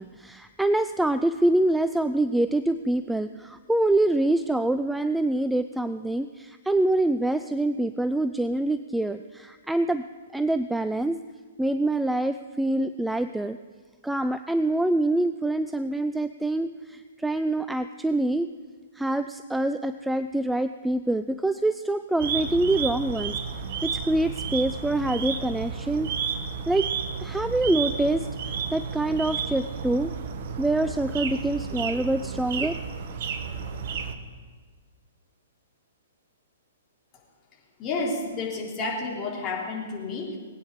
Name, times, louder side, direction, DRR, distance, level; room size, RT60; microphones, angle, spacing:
voice 1, 0.0-10.0 10.3-11.2 11.6-13.6 14.0-18.5 18.9-26.1 26.7-26.9 27.2-28.3 28.7-30.1 30.6-32.8, right 1 dB, 5° right, 11 dB, 0.4 m, -25 dB
sound 1, 22.2-34.1, right 6 dB, 45° right, 1.2 m, -32 dB
voice 2, 37.8-40.4, left 3 dB, 25° left, -2 dB, 3.6 m, -30 dB
20.0 x 9.2 x 6.7 m, 1.5 s
figure-of-eight pair, 115°, 0 cm